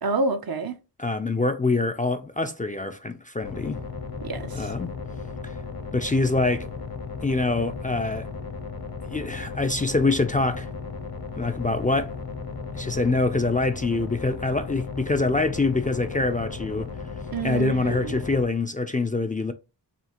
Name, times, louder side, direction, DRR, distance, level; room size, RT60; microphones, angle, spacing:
voice 1, 0.0-0.7 4.2-4.7 17.3-18.2, right 3 dB, 55° right, 0.6 m, -28 dB
voice 2, 1.0-3.8 4.5-5.0 5.4-5.6 5.9-6.7 7.2-8.3 9.1-10.7 11.4-12.2 12.7-16.9 17.4-19.5, left 3 dB, 20° left, 0.4 m, -25 dB
sound 1, 3.4-18.4, left 4 dB, 60° left, 0.9 m, -35 dB
5.0 x 2.8 x 2.9 m
wide cardioid pair, 50°, 42 cm